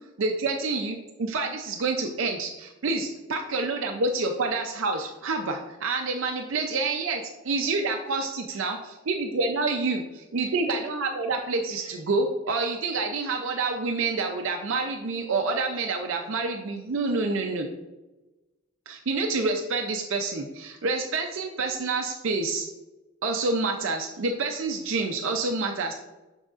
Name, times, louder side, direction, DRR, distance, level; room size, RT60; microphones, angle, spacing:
voice 1, 0.2-10.0 10.3-17.7 18.9-22.7 23.2-25.9, right 3 dB, 65° right, 3 dB, 0.5 m, -28 dB
6.3 x 6.3 x 2.5 m, 1.1 s
head